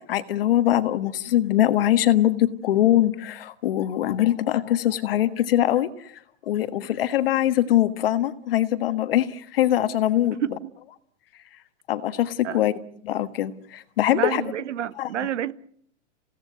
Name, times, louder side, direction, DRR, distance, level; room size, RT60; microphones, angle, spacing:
voice 1, 0.1-6.1 6.5-10.4 11.9-12.7 13.0-14.4 15.0-15.3, left 12 dB, 50° left, 1.6 m, -22 dB
voice 2, 10.3-10.7 12.4-12.6 14.1-15.5, right 10 dB, 70° right, 1.3 m, -29 dB
29.0 x 17.0 x 9.3 m
hypercardioid pair, 170°, 37 cm